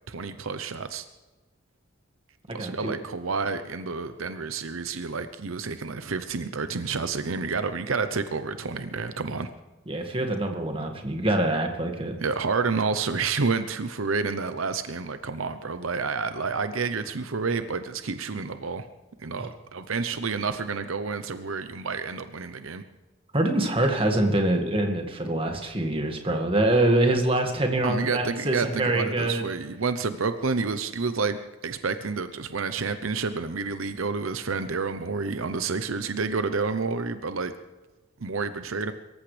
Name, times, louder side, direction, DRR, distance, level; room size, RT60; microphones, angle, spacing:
voice 1, 0.1-1.1 2.5-9.5 12.2-18.9 19.2-22.8 27.8-37.5 38.2-38.9, right 4 dB, 75° right, 10 dB, 0.8 m, -29 dB
voice 2, 2.6-2.9 9.9-12.2 23.3-29.4, right 1 dB, 25° right, 4 dB, 1.9 m, -25 dB
24.0 x 14.5 x 3.4 m, 1.2 s
head